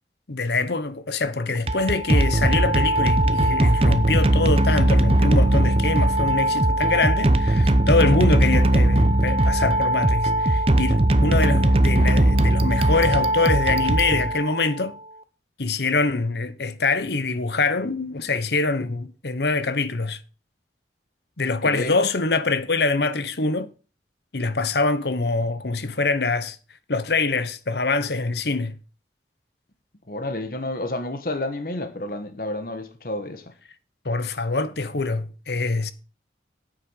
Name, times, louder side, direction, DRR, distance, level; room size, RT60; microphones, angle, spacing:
voice 1, 0.3-14.9 15.6-20.2 21.4-23.7 24.3-26.6 26.9-28.7 34.0-35.9, left 3 dB, 70° left, 1.0 m, -24 dB
sound 1, 1.5-14.7, right 1 dB, 35° right, 0.8 m, -19 dB
voice 2, 21.6-22.0 30.1-33.4, left 1 dB, 55° left, 1.5 m, -30 dB
9.1 x 7.6 x 6.5 m
head